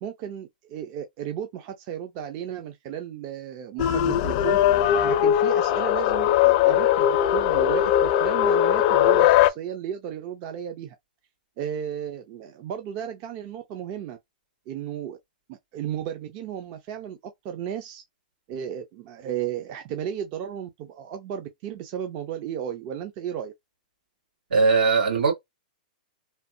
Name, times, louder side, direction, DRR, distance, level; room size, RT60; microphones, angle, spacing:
voice 1, 0.0-4.6 5.0-11.0 11.6-14.2 14.7-15.2 15.5-18.0 18.5-23.5, right 9 dB, 40° right, 0.5 m, -34 dB
sound 1, 3.8-9.5, left 11 dB, 45° left, 0.4 m, -20 dB
voice 2, 24.5-25.3, right 4 dB, 80° right, 1.9 m, -19 dB
3.2 x 2.4 x 2.6 m
hypercardioid pair, 145°, 5 cm